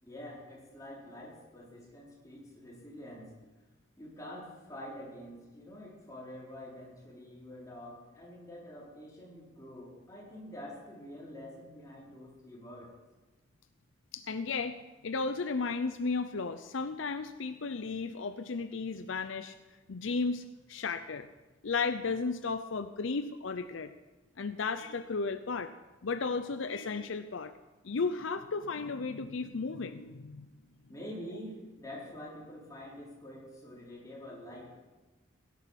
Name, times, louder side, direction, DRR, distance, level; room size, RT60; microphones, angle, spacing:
voice 1, 0.0-3.3 4.0-12.9 30.9-34.8, left 1 dB, 15° left, -5 dB, 4.7 m, -46 dB
voice 2, 14.1-19.5 19.9-21.3 21.6-23.9 24.4-25.7 26.0-27.5 27.8-30.5, left 4 dB, 70° left, 10 dB, 0.6 m, -34 dB
17.5 x 11.0 x 5.9 m, 1.2 s
head